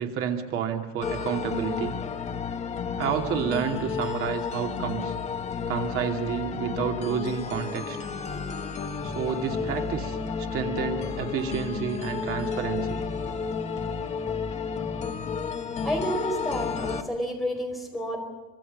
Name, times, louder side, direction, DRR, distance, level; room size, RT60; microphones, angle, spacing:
voice 1, 0.0-2.0 3.0-5.1 5.7-8.0 9.0-13.0, right 7 dB, 45° right, 3 dB, 2.7 m, -30 dB
sound 1, 1.0-17.0, left 5 dB, 20° left, 1.3 m, -32 dB
voice 2, 15.8-18.2, equal, ahead, 1 dB, 4.7 m, -30 dB
25.5 x 25.5 x 5.4 m, 1.2 s
cardioid pair, 180°, 30 cm